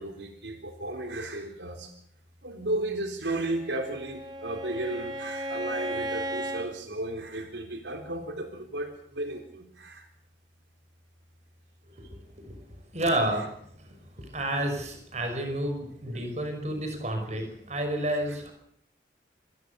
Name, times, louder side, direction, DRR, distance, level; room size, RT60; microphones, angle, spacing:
voice 1, 0.0-1.9 2.4-10.1 16.1-16.2, right 2 dB, 80° right, 4 dB, 3.8 m, -34 dB
Bowed string instrument, 3.5-6.7, right 1 dB, 20° right, 2.3 m, -35 dB
voice 2, 12.9-13.5 14.2-18.5, right 1 dB, 40° right, 5 dB, 5.7 m, -30 dB
26.0 x 20.5 x 7.0 m, 0.68 s
head